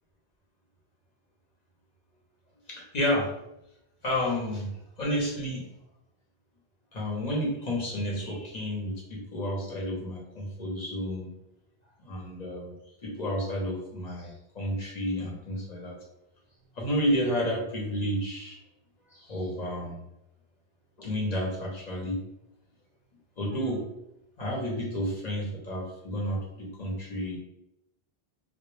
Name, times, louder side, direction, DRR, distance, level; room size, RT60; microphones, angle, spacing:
voice 1, 2.7-3.3 4.0-4.7 5.0-5.7 6.9-11.3 12.0-12.7 13.0-16.0 16.8-18.6 19.1-20.0 21.0-22.2 23.4-23.8 24.4-27.4, equal, 45° left, -3 dB, 0.7 m, -31 dB
2.1 x 2.1 x 3.1 m, 0.85 s
omnidirectional pair, 1.1 m